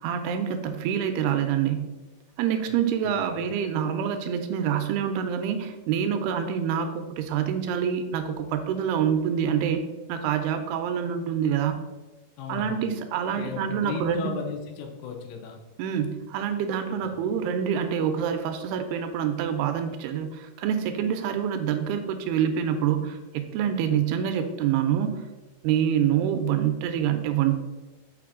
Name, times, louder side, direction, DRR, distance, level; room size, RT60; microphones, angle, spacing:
voice 1, 0.0-1.9 2.4-9.8 10.1-11.8 12.5-14.3 15.8-25.2 25.6-27.6, right 8 dB, 85° right, 7 dB, 2.5 m, -26 dB
voice 2, 3.0-3.5 12.4-12.8 13.3-15.6 17.0-17.1, left 7 dB, 90° left, 3 dB, 3.1 m, -36 dB
6.8 x 5.8 x 3.7 m, 1.1 s
omnidirectional pair, 4.7 m